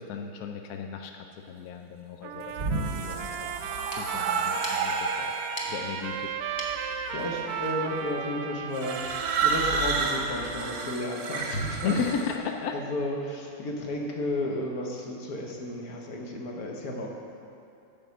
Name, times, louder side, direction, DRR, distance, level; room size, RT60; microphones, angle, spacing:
voice 1, 0.0-5.4 5.7-6.3 11.8-12.8, left 6 dB, 75° left, 4 dB, 0.8 m, -35 dB
Trumpet, 2.2-11.0, right 8 dB, 85° right, 0.8 m, -35 dB
sound 1, 2.3-5.8 6.7-7.1 8.7-12.4, right 4 dB, 55° right, 1.1 m, -30 dB
sound 2, 3.6-8.9, left 1 dB, 25° left, 1.0 m, -44 dB
voice 2, 6.9-11.9 12.7-17.1, left 1 dB, 55° left, 0 dB, 1.5 m, -33 dB
8.9 x 5.7 x 7.0 m, 2.5 s
omnidirectional pair, 2.1 m